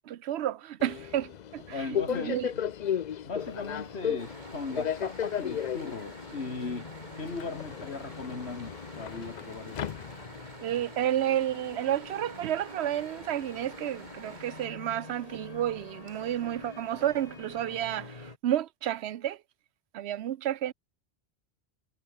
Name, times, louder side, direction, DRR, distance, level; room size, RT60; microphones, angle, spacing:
voice 1, 0.0-2.5 10.6-19.4 19.9-20.7, right 11 dB, 75° right, 0.9 m, -31 dB
Subway metro underground, 0.8-10.6, left 9 dB, 50° left, 0.6 m, -35 dB
voice 2, 1.7-2.6 3.2-6.9 7.2-9.8, left 4 dB, 75° left, 2.8 m, -38 dB
sound 1, 3.4-18.4, left 3 dB, 35° left, 1.9 m, -47 dB
sound 2, 4.2-14.7, right 2 dB, 45° right, 3.4 m, -50 dB
omnidirectional pair, 1.1 m